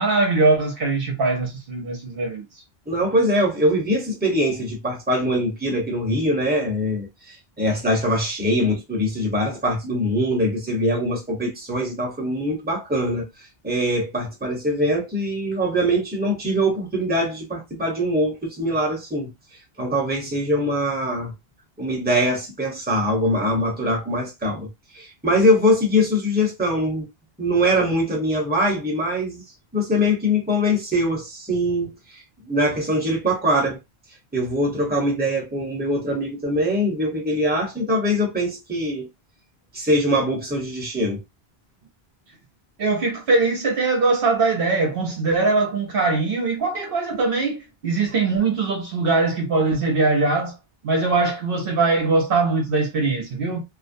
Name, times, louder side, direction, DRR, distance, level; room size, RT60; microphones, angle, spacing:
voice 1, 0.0-2.5 42.8-50.5 50.8-53.6, right 3 dB, 65° right, 0.9 m, -21 dB
voice 2, 2.9-13.3 13.6-19.3 19.8-21.3 21.8-24.7 24.9-27.1 27.4-29.4 29.7-33.8 34.3-39.1 39.7-41.2, equal, 10° right, 0.8 m, -22 dB
2.4 x 2.1 x 2.6 m
omnidirectional pair, 1.0 m